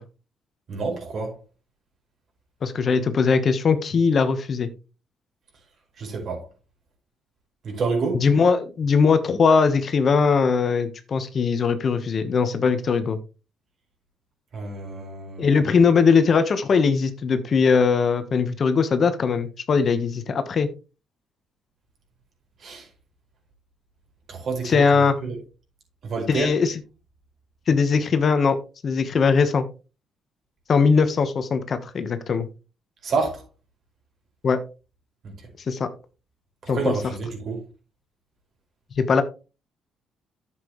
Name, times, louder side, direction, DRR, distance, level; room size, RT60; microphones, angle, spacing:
voice 1, 0.7-1.4 6.0-6.4 7.6-8.2 14.5-15.6 22.6-22.9 24.3-25.4 26.0-26.5 33.0-33.4 36.6-37.7, right 4 dB, 60° right, 5.0 m, -28 dB
voice 2, 2.6-4.7 8.1-13.2 15.4-20.7 24.6-25.1 26.3-26.7 27.7-28.6 28.8-29.6 30.7-32.5 34.4-34.6 35.7-35.9 36.7-36.9 39.0-39.2, left 5 dB, 50° left, 1.2 m, -20 dB
10.5 x 7.5 x 3.2 m
cardioid pair, 90°, 0 cm